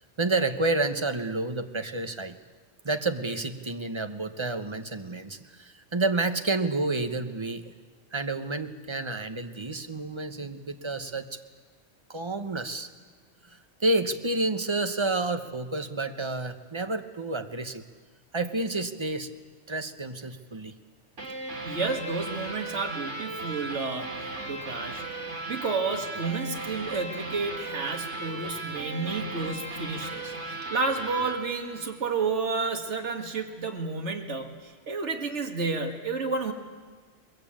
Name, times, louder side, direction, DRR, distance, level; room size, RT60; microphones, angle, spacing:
voice 1, 0.0-2.4 2.8-7.7 8.1-11.4 12.1-12.9 13.8-17.8 18.3-19.3 19.7-20.7, right 2 dB, 25° right, 8 dB, 1.2 m, -29 dB
sound 1, 21.2-32.4, right 2 dB, 90° right, 3.3 m, -37 dB
voice 2, 21.6-25.0 25.5-36.5, right 4 dB, 75° right, 3 dB, 2.2 m, -31 dB
22.0 x 21.5 x 8.8 m, 1.5 s
omnidirectional pair, 1.2 m